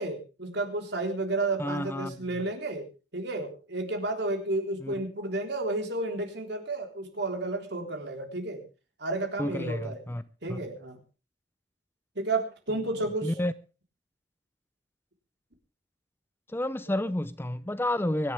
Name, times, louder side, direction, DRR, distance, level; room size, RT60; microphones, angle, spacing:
voice 1, 0.0-2.9 3.1-8.6 9.0-10.0 10.4-11.0 12.2-13.3 16.9-17.0, right 2 dB, 65° right, 3.9 m, -32 dB
voice 2, 1.6-2.2 4.8-4.9 9.4-10.2 10.5-10.6 13.2-13.5 16.5-18.3, left 1 dB, 15° left, 0.6 m, -30 dB
24.5 x 11.0 x 3.4 m
head